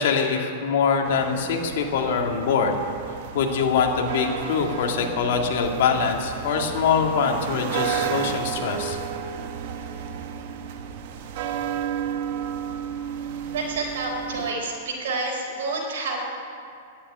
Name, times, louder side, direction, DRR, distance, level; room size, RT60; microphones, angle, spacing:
voice 1, 0.0-2.7 3.3-9.0, left 6 dB, 65° left, 2 dB, 2.0 m, -23 dB
sound 1, 1.0-14.5, right 8 dB, 55° right, 1.1 m, -32 dB
voice 2, 13.5-16.2, right 3 dB, 75° right, -1 dB, 4.5 m, -29 dB
11.5 x 9.1 x 9.9 m, 2.4 s
supercardioid pair, 145°, 0 cm